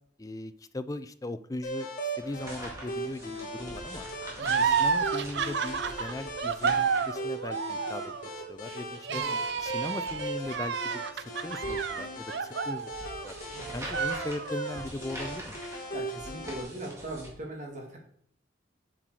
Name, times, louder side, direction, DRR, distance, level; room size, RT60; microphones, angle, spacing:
voice 1, 0.2-4.1 4.6-8.0 8.3-9.2 9.6-12.9 13.2-13.3 13.7-15.6, left 2 dB, 20° left, 11 dB, 0.4 m, -39 dB
sound 1, 1.6-16.6, right 1 dB, 45° left, 2.3 m, -39 dB
sound 2, 2.2-17.3, right 1 dB, 15° right, 2.1 m, -45 dB
voice 2, 4.4-4.7 9.1-9.4 13.5-13.8 15.9-18.0, right 1 dB, 40° right, 0 dB, 2.0 m, -40 dB
sound 3, 4.4-13.4 13.8-14.8, right 6 dB, 70° right, 0.5 m, -31 dB
7.8 x 5.8 x 4.7 m, 0.63 s
head